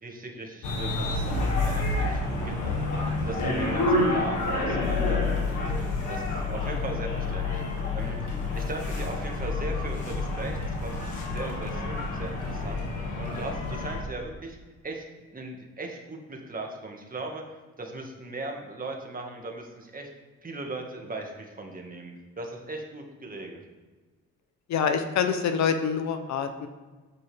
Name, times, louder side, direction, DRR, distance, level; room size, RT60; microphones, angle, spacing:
voice 1, 0.0-2.9 3.2-5.7 6.1-7.6 7.9-8.2 8.6-12.9 13.2-14.6 14.8-15.0 15.3-17.4 17.8-20.1 20.4-23.6, right 2 dB, 30° right, 1 dB, 1.6 m, -38 dB
sound 1, 0.6-14.0, left 2 dB, 85° left, 1.6 m, -28 dB
voice 2, 24.7-26.7, left 6 dB, 65° left, 8 dB, 0.8 m, -26 dB
8.4 x 8.0 x 3.4 m, 1.3 s
cardioid pair, 90°, 30 cm